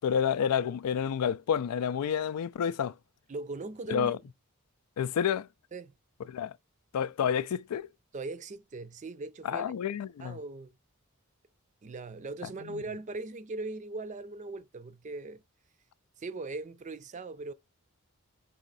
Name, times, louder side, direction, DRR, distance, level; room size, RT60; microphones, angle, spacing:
voice 1, 0.0-2.9 3.9-4.2 5.0-5.5 6.3-6.5 6.9-7.9 9.4-10.4, left 8 dB, 90° left, 0.4 m, -29 dB
voice 2, 3.3-4.2 5.7-5.9 8.1-9.7 10.2-10.7 11.8-15.4 16.2-17.5, right 3 dB, 35° right, 0.4 m, -39 dB
4.2 x 2.7 x 3.9 m
head